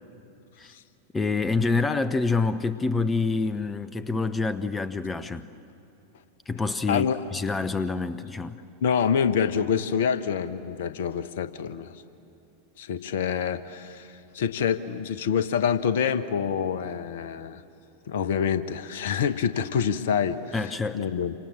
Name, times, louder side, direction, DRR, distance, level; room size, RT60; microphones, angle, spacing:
voice 1, 1.1-5.5 6.5-7.1 7.3-8.6 20.5-21.0, left 4 dB, 15° left, 13 dB, 0.8 m, -27 dB
voice 2, 6.9-7.2 8.8-11.9 12.8-17.6 18.1-21.3, left 7 dB, 55° left, 12 dB, 1.1 m, -26 dB
28.0 x 26.0 x 7.3 m, 2.7 s
figure-of-eight pair, 90°, 0 cm